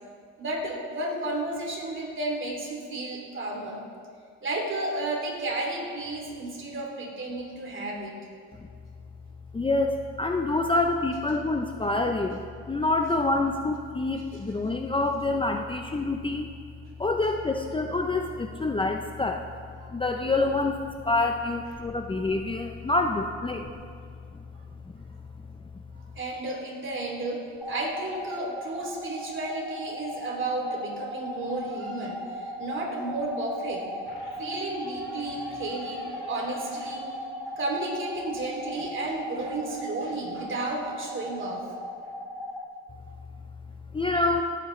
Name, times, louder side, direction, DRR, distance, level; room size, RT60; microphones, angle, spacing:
voice 1, 0.4-3.8 4.4-8.1 19.8-19.9 26.1-33.9 34.4-37.2 37.6-41.7, right 2 dB, 40° right, -1 dB, 2.9 m, -32 dB
voice 2, 9.5-16.5 17.0-19.5 19.9-23.7 43.9-44.4, left 2 dB, 15° left, 4 dB, 0.6 m, -27 dB
sound 1, 27.6-42.6, equal, 5° right, 1.5 m, -37 dB
sound 2, 31.3-32.2 34.1-37.8, equal, 40° left, 3.0 m, -49 dB
17.5 x 9.2 x 3.2 m, 2.2 s
cardioid pair, 90°, 30 cm